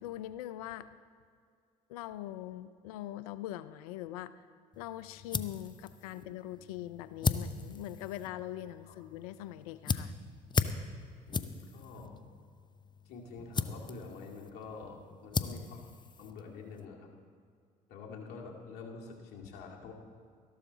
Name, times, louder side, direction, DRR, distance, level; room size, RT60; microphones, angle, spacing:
voice 1, 0.0-0.9 1.9-4.5 4.8-10.1, left 13 dB, 85° left, 15 dB, 0.5 m, -42 dB
sound 1, 4.7-16.9, left 5 dB, 25° left, 0.6 m, -38 dB
voice 2, 11.3-12.2 13.1-15.8 16.2-17.1 17.9-19.9, left 4 dB, 60° left, 0 dB, 2.2 m, -47 dB
13.5 x 12.0 x 4.1 m, 2.2 s
hypercardioid pair, 65°, 18 cm